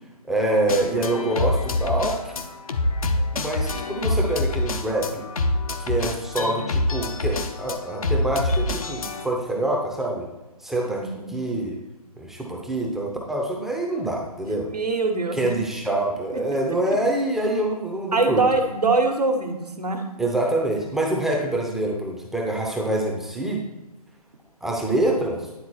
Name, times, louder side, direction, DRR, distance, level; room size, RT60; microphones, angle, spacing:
voice 1, 0.3-2.3 3.3-5.2 5.8-10.3 10.6-11.8 12.2-14.7 15.3-18.4 20.2-23.6 24.6-25.5, right 1 dB, ahead, -2 dB, 0.5 m, -25 dB
sound 1, 0.7-9.2, left 2 dB, 65° left, 0.8 m, -26 dB
voice 2, 10.8-11.3 14.7-15.5 16.3-16.4 18.1-20.0, right 3 dB, 85° right, 3 dB, 1.3 m, -23 dB
9.7 x 3.9 x 4.2 m, 1.1 s
figure-of-eight pair, 140°, 20 cm